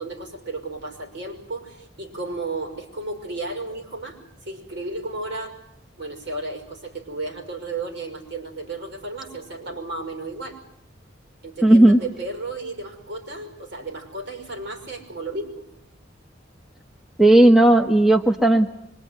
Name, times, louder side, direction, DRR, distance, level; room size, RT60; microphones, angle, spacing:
voice 1, 0.0-5.5 6.0-10.6 11.4-15.6, right 2 dB, 65° right, 5 dB, 5.8 m, -33 dB
voice 2, 11.6-12.0 17.2-18.7, right 1 dB, ahead, 3 dB, 1.2 m, -14 dB
25.5 x 23.5 x 9.7 m, 0.77 s
head